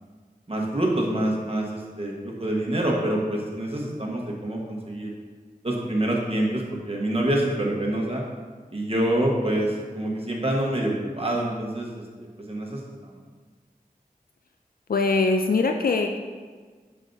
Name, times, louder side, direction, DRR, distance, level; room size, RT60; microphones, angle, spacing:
voice 1, 0.5-5.1 5.6-8.2 8.7-13.2, right 1 dB, 40° right, -2 dB, 1.3 m, -26 dB
voice 2, 14.9-16.2, left 3 dB, 80° left, 4 dB, 0.4 m, -22 dB
7.1 x 5.8 x 2.7 m, 1.5 s
wide cardioid pair, 45°, 15 cm